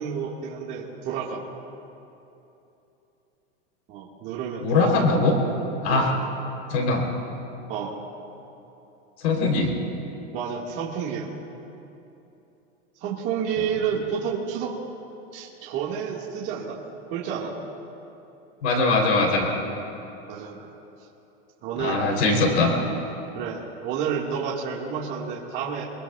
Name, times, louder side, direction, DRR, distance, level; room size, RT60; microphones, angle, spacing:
voice 1, 0.0-1.4 3.9-5.0 5.9-6.1 7.7-8.0 10.3-11.3 13.0-14.8 15.3-16.8 17.1-17.5 20.3-20.7 21.6-22.0 23.4-25.9, right 7 dB, 35° right, -4 dB, 1.8 m, -30 dB
voice 2, 4.6-5.4 5.8-6.1 6.7-7.0 9.2-9.7 18.6-19.5 21.8-22.7, left 3 dB, 90° left, 1 dB, 3.5 m, -21 dB
24.0 x 22.5 x 2.4 m, 2.9 s
supercardioid pair, 175°, 33 cm